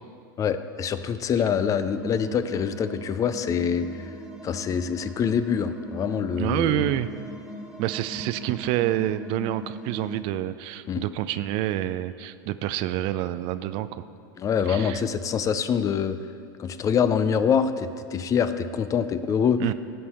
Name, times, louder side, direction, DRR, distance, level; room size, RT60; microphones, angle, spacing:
voice 1, 0.4-4.0 4.4-6.8 10.9-11.0 14.4-16.2 16.6-19.6, left 7 dB, 30° left, 12 dB, 0.5 m, -25 dB
sound 1, 1.7-10.2, right 2 dB, 5° right, 1.2 m, -40 dB
voice 2, 6.4-7.1 7.8-14.0 14.7-15.0 19.6-19.7, right 13 dB, 50° right, 13 dB, 0.4 m, -27 dB
15.5 x 5.5 x 4.3 m, 2.3 s
hypercardioid pair, 105°, 11 cm